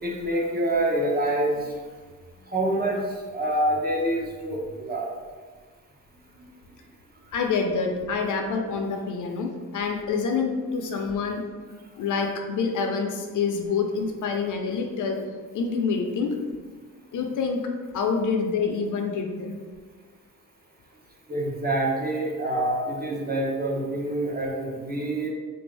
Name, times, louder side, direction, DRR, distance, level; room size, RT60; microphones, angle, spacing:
voice 1, 0.0-1.7 2.5-5.1 21.3-25.3, right 1 dB, 30° right, -2 dB, 0.7 m, -26 dB
voice 2, 7.3-11.4 12.0-15.2 15.5-16.4 17.1-17.6 17.9-19.6, left 5 dB, 65° left, 3 dB, 0.5 m, -27 dB
3.7 x 2.6 x 3.2 m, 1.4 s
wide cardioid pair, 145°, 33 cm